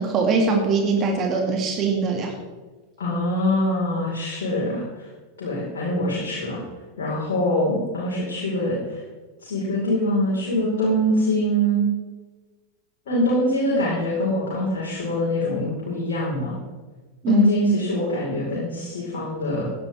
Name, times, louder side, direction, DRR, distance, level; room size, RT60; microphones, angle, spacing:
voice 1, 0.0-2.3 17.2-17.5, right 4 dB, 30° right, 1 dB, 2.5 m, -21 dB
voice 2, 3.0-4.8 5.4-6.6 7.0-9.0 9.4-11.8 13.1-16.6 17.3-19.7, left 1 dB, 55° left, -7 dB, 4.9 m, -23 dB
17.0 x 10.5 x 3.7 m, 1.3 s
figure-of-eight pair, 90°, 0 cm